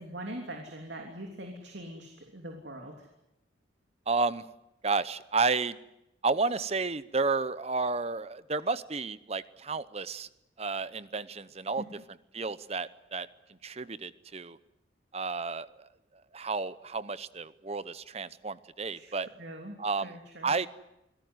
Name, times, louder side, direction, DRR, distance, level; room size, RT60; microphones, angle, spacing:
voice 1, 0.0-3.1 11.8-11.9 18.9-19.8 20.0-20.5, right 1 dB, 60° right, 2 dB, 3.2 m, -42 dB
voice 2, 4.1-4.4 4.8-5.8 6.2-10.3 10.6-11.8 12.3-13.3 13.6-14.6 15.1-15.9 16.3-19.3 19.8-20.2 20.4-20.7, right 4 dB, 30° right, 15 dB, 0.8 m, -31 dB
25.0 x 18.0 x 9.6 m, 0.85 s
head